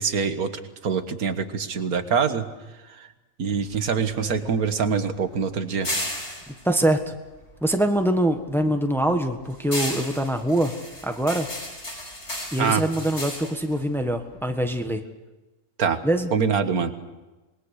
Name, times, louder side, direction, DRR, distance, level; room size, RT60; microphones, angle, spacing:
voice 1, 0.0-2.5 2.9-3.1 3.4-5.9 12.6-12.8 15.8-16.0 16.3-16.9, right 6 dB, 85° right, 9 dB, 1.9 m, -24 dB
sound 1, 3.5-8.0 8.3-14.8, left 1 dB, 50° left, 5.8 m, -35 dB
voice 2, 6.6-7.1 7.6-10.7 11.0-11.5 12.5-15.0 16.0-16.3, right 1 dB, ahead, 6 dB, 1.4 m, -23 dB
26.5 x 20.5 x 6.6 m, 1.1 s
omnidirectional pair, 1.5 m